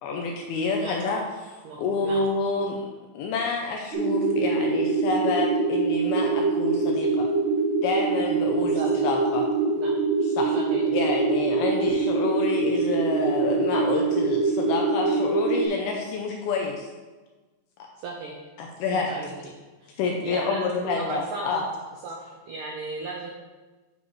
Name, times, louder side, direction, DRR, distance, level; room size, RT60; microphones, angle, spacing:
voice 1, 0.0-2.9 3.1-7.3 7.8-9.4 10.2-10.6 10.9-16.9 18.6-19.2 20.0-21.6, left 4 dB, 80° left, 1 dB, 2.3 m, -28 dB
voice 2, 1.6-2.2 8.8-9.0 9.8-10.0 10.5-10.8 18.0-18.4 18.9-19.3 19.8-19.9 20.2-21.6 22.0-23.3, right 3 dB, 85° right, -1 dB, 1.9 m, -36 dB
sound 1, 3.9-15.7, right 3 dB, 65° right, 2.3 m, -24 dB
9.3 x 6.6 x 3.1 m, 1.2 s
omnidirectional pair, 5.0 m